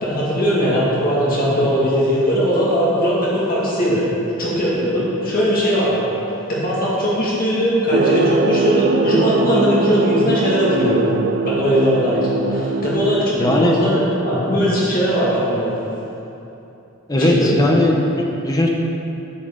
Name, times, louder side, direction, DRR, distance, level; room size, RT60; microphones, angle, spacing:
voice 1, 0.0-4.0 4.4-6.1 6.5-11.0 11.4-15.7 17.2-17.5, equal, 40° left, -7 dB, 2.1 m, -19 dB
sound 1, 7.9-13.7, right 3 dB, 45° right, 0.4 m, -21 dB
voice 2, 13.3-13.8 17.1-18.7, left 1 dB, 15° left, 0 dB, 0.9 m, -18 dB
8.6 x 8.6 x 3.8 m, 3.0 s
head